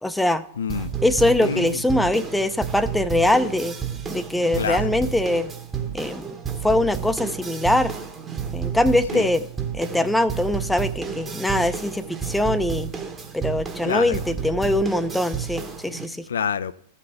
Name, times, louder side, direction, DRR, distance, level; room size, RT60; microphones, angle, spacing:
voice 1, 0.0-0.4 1.0-3.8 4.1-5.5 5.9-6.4 6.6-7.9 8.5-9.4 9.7-12.9 13.3-16.2, left 1 dB, 5° left, 0.5 m, -22 dB
voice 2, 0.6-0.9 1.4-1.8 4.6-5.0 9.1-9.3 13.8-14.2 16.3-16.7, left 7 dB, 75° left, 0.3 m, -27 dB
sound 1, 0.7-16.1, right 7 dB, 20° right, 1.1 m, -31 dB
15.0 x 5.7 x 3.3 m
hypercardioid pair, 100°, 0 cm